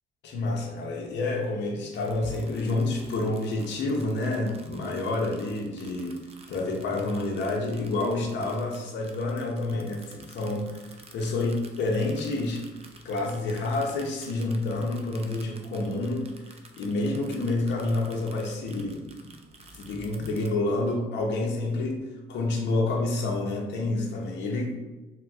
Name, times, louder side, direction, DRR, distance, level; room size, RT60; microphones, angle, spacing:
voice 1, 0.2-6.2 6.5-12.6 13.0-16.3 16.8-19.3 19.7-22.0 22.3-24.8, left 2 dB, 65° left, 0 dB, 0.5 m, -28 dB
sound 1, 1.9-20.5, right 3 dB, 30° right, 0.4 m, -50 dB
3.9 x 2.0 x 2.2 m, 1.1 s
cardioid pair, 90°, 20 cm